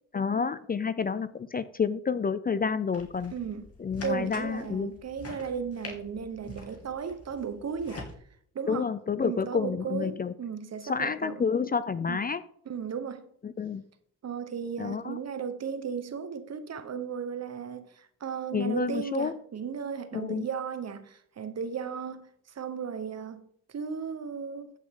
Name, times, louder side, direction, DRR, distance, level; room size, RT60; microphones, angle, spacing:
voice 1, 0.1-3.3 3.8-4.9 8.7-10.3 10.8-12.4 13.4-13.8 14.8-15.2 18.5-19.4 20.1-20.5, left 5 dB, 25° left, 0.5 m, -29 dB
sound 1, 2.9-8.1, left 2 dB, 40° left, 2.8 m, -45 dB
voice 2, 3.3-3.6 4.0-8.1 8.5-8.9 9.2-11.5 12.1-12.2 12.7-13.3 14.2-22.3 22.5-24.8, right 6 dB, 45° right, 1.2 m, -35 dB
14.0 x 6.1 x 3.8 m
supercardioid pair, 70°, 35 cm